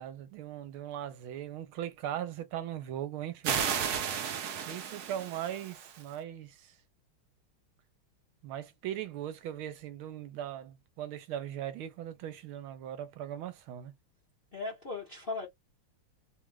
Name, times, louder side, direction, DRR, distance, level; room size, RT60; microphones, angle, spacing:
voice 1, 0.0-3.6 4.7-6.5 8.4-13.9, right 11 dB, 80° right, 1.6 m, -39 dB
sound 1, 3.4-6.0, right 8 dB, 65° right, 1.0 m, -33 dB
voice 2, 14.5-15.5, left 3 dB, 40° left, 0.9 m, -37 dB
3.6 x 2.4 x 3.2 m
omnidirectional pair, 2.3 m